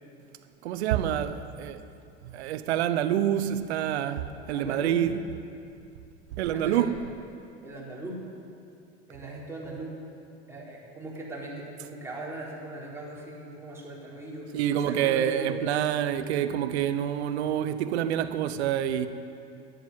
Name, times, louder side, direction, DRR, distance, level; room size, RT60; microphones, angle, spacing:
voice 1, 0.6-1.8 2.3-5.2 6.4-6.9 14.5-19.1, right 10 dB, 80° right, 0.8 m, -27 dB
voice 2, 4.5-5.0 6.5-6.8 7.6-8.2 9.1-10.0 10.5-14.5 14.7-15.6, right 2 dB, 10° right, 3.9 m, -39 dB
11.0 x 9.5 x 7.8 m
hypercardioid pair, 85°, 32 cm